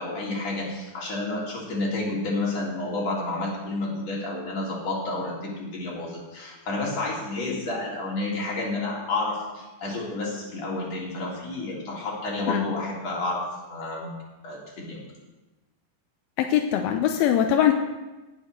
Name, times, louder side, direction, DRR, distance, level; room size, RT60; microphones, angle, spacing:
voice 1, 0.0-14.1 14.4-15.0, left 2 dB, 45° left, -5 dB, 4.6 m, -30 dB
voice 2, 16.4-17.7, left 10 dB, 85° left, 5 dB, 2.6 m, -21 dB
17.5 x 7.3 x 6.5 m, 1.1 s
omnidirectional pair, 4.3 m